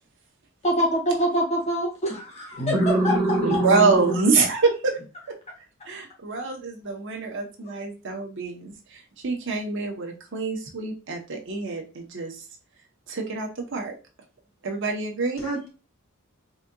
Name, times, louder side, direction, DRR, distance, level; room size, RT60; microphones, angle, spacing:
voice 1, 0.6-2.6 3.5-3.6, right 1 dB, 30° left, -2 dB, 1.8 m, -25 dB
voice 2, 2.6-4.2 15.4-15.7, right 2 dB, 75° left, -3 dB, 1.9 m, -24 dB
voice 3, 3.4-5.0 5.3-5.4 5.9-12.4 13.1-14.0 14.6-15.4, right 4 dB, 60° right, 2 dB, 0.8 m, -26 dB
4.1 x 3.7 x 2.3 m, 0.32 s
head